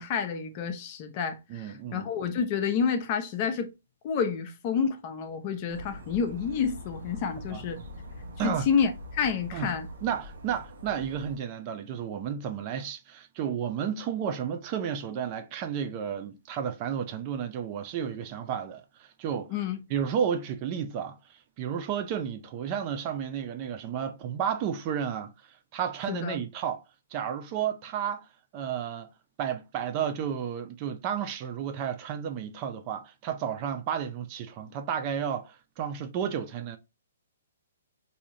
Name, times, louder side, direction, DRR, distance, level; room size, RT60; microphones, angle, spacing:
voice 1, 0.0-1.7 1.9-3.7 4.0-7.8 8.4-9.9 19.5-19.8 26.1-26.4, left 6 dB, 40° left, 0.7 m, -29 dB
voice 2, 1.5-2.1 7.5-7.6 8.4-8.7 9.5-9.7 10.0-19.5 19.9-26.8 27.1-29.1 29.4-36.8, right 8 dB, 35° right, 0.5 m, -32 dB
sound 1, 5.7-11.4, left 1 dB, 70° right, 1.1 m, -43 dB
4.7 x 2.8 x 2.7 m
hypercardioid pair, 135°, 0 cm